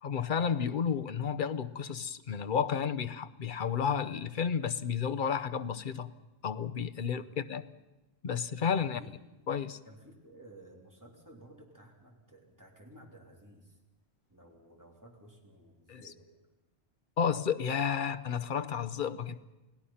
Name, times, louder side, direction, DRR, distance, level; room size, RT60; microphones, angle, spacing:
voice 1, 0.0-6.1 6.4-7.6 8.2-9.0 9.5-9.8 15.9-16.0 17.2-19.4, left 7 dB, 50° left, 1.0 m, -32 dB
voice 2, 6.9-7.3 8.7-9.2 9.8-13.8 14.3-16.3, right 1 dB, 15° right, 3.4 m, -55 dB
29.0 x 17.5 x 5.7 m
omnidirectional pair, 1.1 m